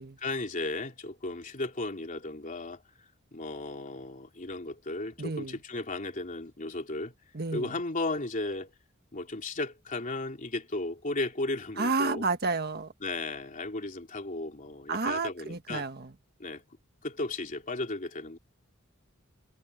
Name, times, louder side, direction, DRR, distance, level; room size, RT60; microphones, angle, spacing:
voice 1, 0.0-2.8 3.3-7.1 7.5-8.7 9.1-12.2 13.0-15.9 16.4-16.6 17.0-18.4, left 2 dB, 40° left, 3.3 m, -35 dB
voice 2, 5.2-5.6 7.3-7.7 11.8-12.9 14.9-16.1, right 3 dB, 50° right, 1.5 m, -31 dB
head